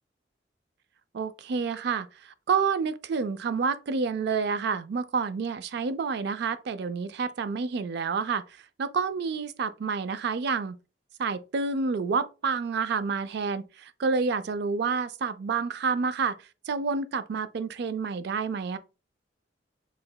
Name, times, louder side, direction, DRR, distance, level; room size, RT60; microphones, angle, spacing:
voice 1, 1.1-8.4 8.8-10.8 11.2-16.4 16.7-18.8, right 5 dB, 65° right, 0.4 m, -29 dB
4.8 x 3.1 x 2.2 m
head